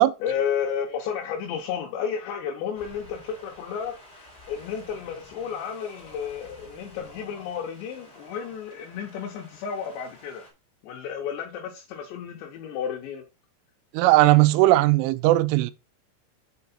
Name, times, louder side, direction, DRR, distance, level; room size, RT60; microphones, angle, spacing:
voice 1, 0.2-3.9 4.5-10.4 10.8-13.2, left 7 dB, 80° left, 2.9 m, -32 dB
Wind, 2.7-10.5, left 1 dB, 15° left, 2.9 m, -49 dB
voice 2, 13.9-15.7, right 17 dB, 85° right, 3.1 m, -18 dB
6.8 x 4.8 x 4.1 m
omnidirectional pair, 5.6 m